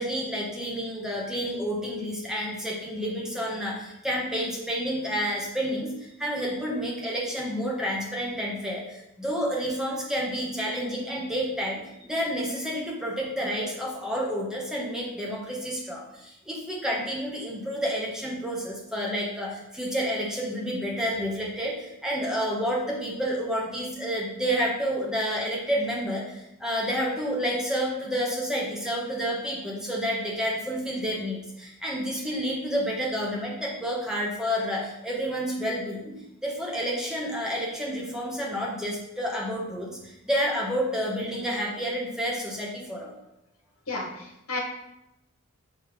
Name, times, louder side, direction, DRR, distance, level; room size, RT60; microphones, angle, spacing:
voice 1, 0.0-36.1 36.4-43.1, equal, 5° right, -3 dB, 1.1 m, -30 dB
voice 2, 43.9-44.6, left 3 dB, 85° left, 0 dB, 1.5 m, -32 dB
6.3 x 3.3 x 5.1 m, 0.87 s
head